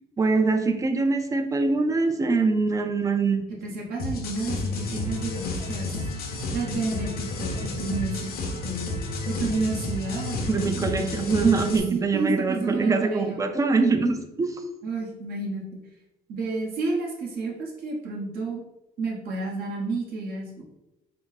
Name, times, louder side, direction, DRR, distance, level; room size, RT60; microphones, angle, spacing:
voice 1, 0.2-3.4 10.5-14.6, right 4 dB, 20° right, 7 dB, 0.4 m, -23 dB
voice 2, 3.6-5.9 6.5-8.3 8.6-8.9 9.2-10.8 11.9-13.4 14.8-15.6 16.3-18.6 19.0-20.6, right 3 dB, 65° right, -2 dB, 1.1 m, -30 dB
sound 1, 4.0-11.8, left 2 dB, 60° left, 0.8 m, -31 dB
4.5 x 2.0 x 4.0 m, 0.95 s
cardioid pair, 110°, 17 cm